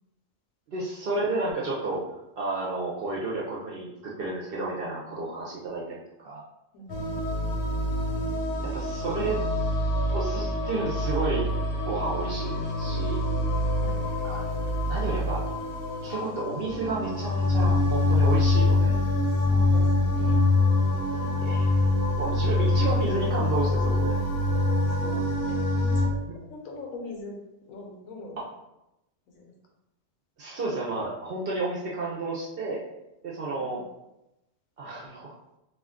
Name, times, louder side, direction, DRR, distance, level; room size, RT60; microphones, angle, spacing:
voice 1, 0.7-2.0 2.4-6.4 8.1-8.3 8.6-9.4 10.1-11.5 11.8-13.2 14.2-14.4 14.9-15.4 16.0-19.0 21.4-21.8 22.2-24.2 24.4-24.5 28.4-28.5 30.4-32.8 33.2-33.8 34.8-35.4, right 3 dB, 60° right, -4 dB, 0.6 m, -31 dB
voice 2, 6.7-7.4 13.7-14.0 19.4-21.3 24.6-26.2 26.5-27.4 27.7-28.4 29.3-29.5 33.6-33.8, left 2 dB, 85° left, 1 dB, 1.1 m, -43 dB
sound 1, 6.9-26.1, left 2 dB, 55° left, 0.7 m, -25 dB
2.5 x 2.3 x 3.5 m, 0.90 s
omnidirectional pair, 1.4 m